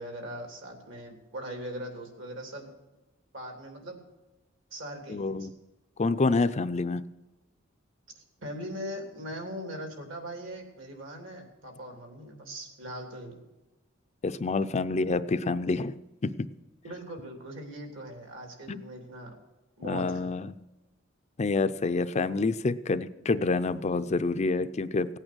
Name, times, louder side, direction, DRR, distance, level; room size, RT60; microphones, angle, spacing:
voice 1, 0.0-2.7 3.3-4.0 4.7-5.5 8.2-13.4 16.8-19.3 19.8-20.2, equal, 70° right, 3 dB, 3.2 m, -40 dB
voice 2, 5.1-5.5 6.0-7.0 14.2-15.9 16.2-16.3 18.7-18.8 19.8-20.5 21.4-25.2, left 3 dB, 35° left, 11 dB, 0.5 m, -27 dB
17.5 x 8.8 x 6.2 m, 1.0 s
head